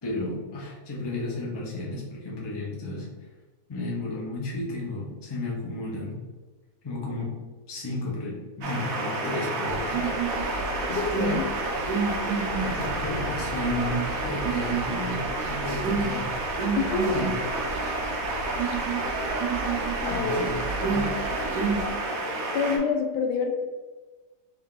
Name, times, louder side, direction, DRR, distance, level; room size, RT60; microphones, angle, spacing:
voice 1, 0.0-3.1 3.7-6.2 6.8-7.4 7.7-10.1 12.6-16.3 17.1-17.4 20.1-21.1, left 2 dB, 25° left, -4 dB, 0.5 m, -33 dB
sound 1, 8.6-22.8, right 2 dB, 60° right, 1.0 m, -30 dB
sound 2, 9.6-21.9, right 5 dB, 80° right, 1.2 m, -31 dB
voice 2, 10.8-11.5 16.7-17.2 18.1-18.3 20.0-20.3 20.8-21.0 22.5-23.6, left 5 dB, 80° left, 3 dB, 1.2 m, -27 dB
3.6 x 2.8 x 3.6 m, 1.3 s
omnidirectional pair, 1.8 m